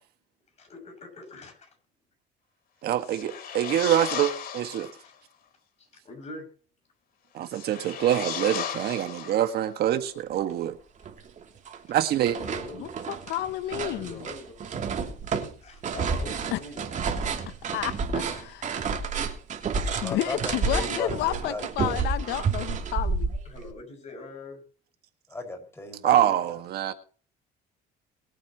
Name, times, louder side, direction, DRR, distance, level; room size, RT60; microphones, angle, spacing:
voice 1, 0.6-1.7 5.0-5.1 5.8-6.4 12.2-12.9 13.9-14.6 15.6-16.9 23.4-24.6, left 2 dB, 40° left, 6.6 m, -43 dB
voice 2, 2.8-4.9 7.3-10.8 11.9-12.4 26.0-26.9, right 11 dB, 70° right, 1.7 m, -25 dB
sound 1, 3.0-5.1 7.4-9.8, left 8 dB, 65° left, 3.1 m, -35 dB
sound 2, 10.6-10.7 11.0-11.8 12.0-23.7, right 5 dB, 45° right, 2.9 m, -30 dB
voice 3, 12.8-14.2 16.5-16.6 17.7-18.7 20.0-23.3, left 14 dB, 80° left, 0.8 m, -31 dB
voice 4, 20.0-22.0 25.3-26.4, left 2 dB, 15° left, 5.5 m, -37 dB
22.0 x 8.6 x 3.0 m
cardioid pair, 110°, 17 cm